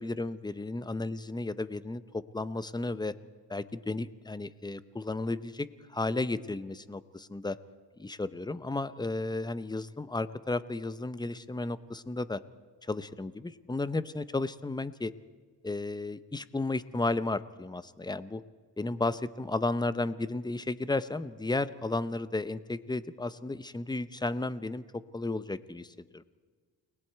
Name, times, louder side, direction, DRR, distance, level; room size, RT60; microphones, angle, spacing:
voice 1, 0.0-3.1 3.5-7.6 8.0-12.4 12.8-15.1 15.6-18.4 18.8-26.2, left 2 dB, 10° left, 14 dB, 0.7 m, -33 dB
29.5 x 20.0 x 4.6 m, 1.5 s
cardioid pair, 95°, 43 cm